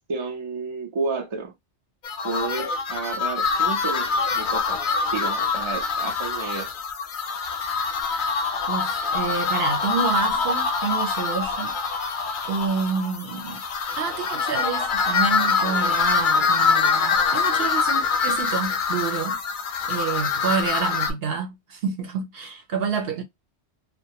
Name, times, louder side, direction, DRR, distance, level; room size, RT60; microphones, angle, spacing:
voice 1, 0.0-1.5 2.2-4.8 5.1-6.7, right 4 dB, 45° right, 0.3 m, -31 dB
sound 1, 2.0-21.1, left 5 dB, 60° left, 0.6 m, -24 dB
voice 2, 8.7-11.8 12.5-13.6 14.0-19.4 19.9-23.2, right 6 dB, 65° right, 0.8 m, -28 dB
2.3 x 2.2 x 2.7 m
omnidirectional pair, 1.2 m